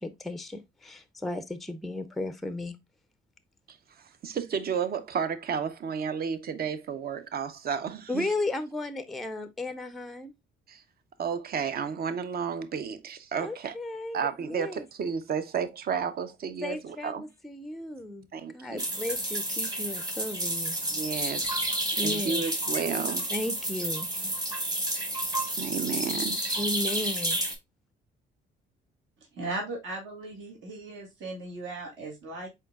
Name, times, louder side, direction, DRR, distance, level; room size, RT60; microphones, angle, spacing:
voice 1, 0.0-2.8 8.1-10.3 13.4-14.8 16.6-18.3 18.5-20.8 22.0-22.4 23.3-24.1 26.6-27.4, left 2 dB, ahead, 0.4 m, -34 dB
voice 2, 3.7-8.3 10.7-10.8 11.2-13.7 14.1-17.2 18.3-18.8 20.9-21.5 22.0-23.3 25.6-26.6, right 6 dB, 50° right, 0.6 m, -32 dB
sound 1, 18.8-27.5, right 1 dB, 20° right, 1.1 m, -30 dB
voice 3, 29.3-32.5, right 2 dB, 75° right, 1.7 m, -37 dB
4.4 x 3.9 x 2.3 m
cardioid pair, 90°, 20 cm